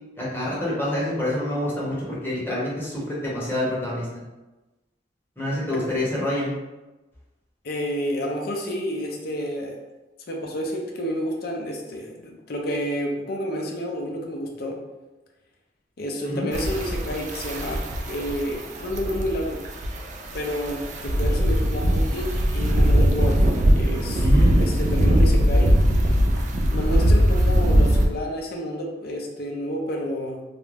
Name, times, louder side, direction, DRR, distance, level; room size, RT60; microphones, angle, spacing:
voice 1, 0.2-4.2 5.4-6.5 16.2-16.5 24.2-24.5, left 1 dB, 15° left, -7 dB, 0.8 m, -27 dB
voice 2, 7.6-9.8 10.3-14.7 16.0-17.8 18.1-19.6 20.3-23.4 23.7-24.3 24.6-25.7 26.7-30.4, equal, 60° left, 0 dB, 0.5 m, -29 dB
sound 1, 16.5-28.1, equal, 45° right, 0.3 m, -21 dB
2.4 x 2.1 x 3.2 m, 1.1 s
head